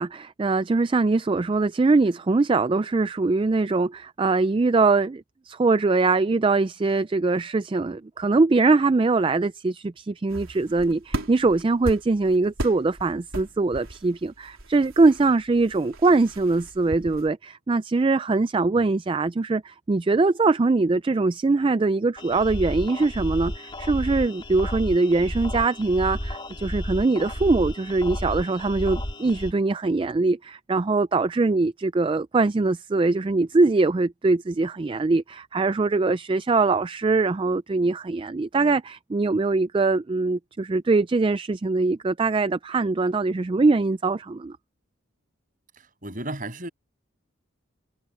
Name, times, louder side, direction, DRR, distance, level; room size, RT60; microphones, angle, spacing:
voice 1, 0.0-44.6, right 3 dB, 25° right, 0.3 m, -22 dB
sound 1, 10.3-17.3, right 1 dB, 85° right, 3.7 m, -37 dB
sound 2, 22.2-29.5, left 1 dB, 25° left, 3.0 m, -32 dB
voice 2, 45.8-46.7, right 1 dB, 40° right, 7.8 m, -34 dB
head